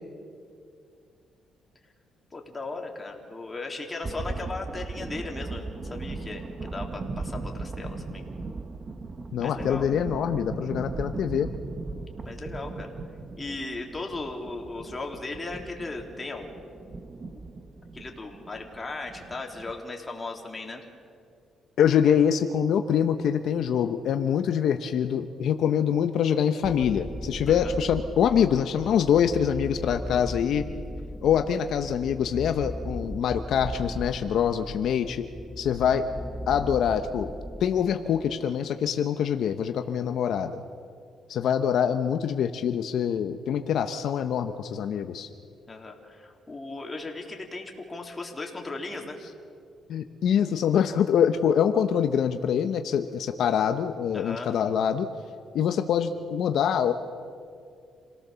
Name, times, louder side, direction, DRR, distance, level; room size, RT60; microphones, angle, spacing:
voice 1, 2.3-8.2 9.4-9.9 12.2-12.9 13.4-16.7 17.9-20.8 27.5-27.7 45.7-49.2 54.1-54.5, left 3 dB, 25° left, 1 dB, 3.5 m, -37 dB
sound 1, 4.0-19.8, right 3 dB, 35° right, 1.3 m, -38 dB
voice 2, 9.3-11.5 21.8-30.6 31.2-35.2 35.6-36.0 36.5-37.3 37.6-40.6 41.3-45.3 49.9-55.1 55.5-56.9, left 8 dB, 70° left, 7 dB, 0.9 m, -25 dB
sound 2, 26.6-38.4, equal, 5° right, 0.9 m, -38 dB
28.0 x 18.0 x 7.0 m, 2.3 s
cardioid pair, 90°, 0 cm